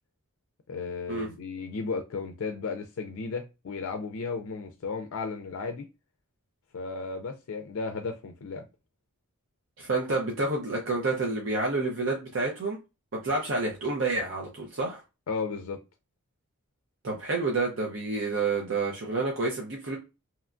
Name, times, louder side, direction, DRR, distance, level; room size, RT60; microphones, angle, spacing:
voice 1, 0.7-5.9 6.7-8.6 15.3-15.8, left 4 dB, 70° left, 0.4 m, -34 dB
voice 2, 9.8-12.8 13.1-15.0 17.0-20.0, right 3 dB, 60° right, 0.6 m, -29 dB
2.9 x 2.2 x 2.4 m
head